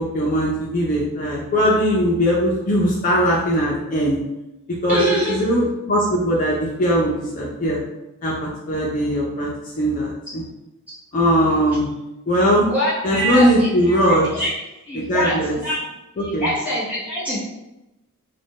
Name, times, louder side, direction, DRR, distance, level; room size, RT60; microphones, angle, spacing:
voice 1, 0.0-4.2 4.8-5.0 5.3-7.8 8.2-9.5 9.8-10.4 11.1-11.9 12.3-12.7 13.0-14.4 14.9-15.6 16.2-16.5, equal, 40° left, -4 dB, 0.4 m, -20 dB
voice 2, 4.9-5.3 11.4-11.6 12.7-14.5 14.8-15.8 16.2-17.4, equal, 5° right, -10 dB, 1.2 m, -25 dB
2.5 x 2.1 x 3.4 m, 0.95 s
head